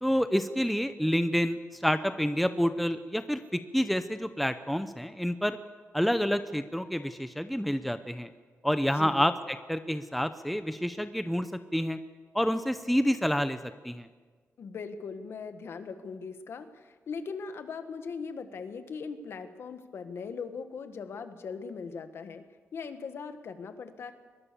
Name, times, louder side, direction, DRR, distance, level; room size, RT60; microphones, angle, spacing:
voice 1, 0.0-5.6 5.9-8.3 8.6-9.3 9.7-12.0 12.3-13.6 13.8-14.1, equal, ahead, 10 dB, 0.7 m, -28 dB
voice 2, 14.6-22.4 22.7-24.1, left 5 dB, 55° left, 9 dB, 1.6 m, -40 dB
23.0 x 21.5 x 6.9 m, 1.5 s
wide cardioid pair, 175°, 5 cm